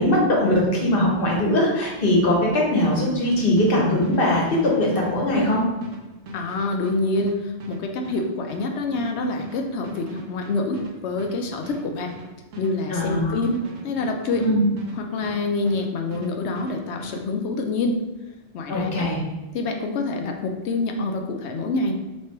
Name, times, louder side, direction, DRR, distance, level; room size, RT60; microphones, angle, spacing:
voice 1, 0.0-5.7 12.9-13.4 14.4-14.6 18.7-19.2, left 1 dB, 50° left, -3 dB, 1.2 m, -21 dB
sound 1, 2.9-15.9 16.1-17.2, right 1 dB, 80° right, 1.1 m, -39 dB
voice 2, 6.3-12.1 12.6-14.4 15.0-18.0 18.5-19.1 19.5-21.9, left 3 dB, 70° left, 3 dB, 0.8 m, -26 dB
3.2 x 3.0 x 4.5 m, 1.1 s
omnidirectional pair, 1.3 m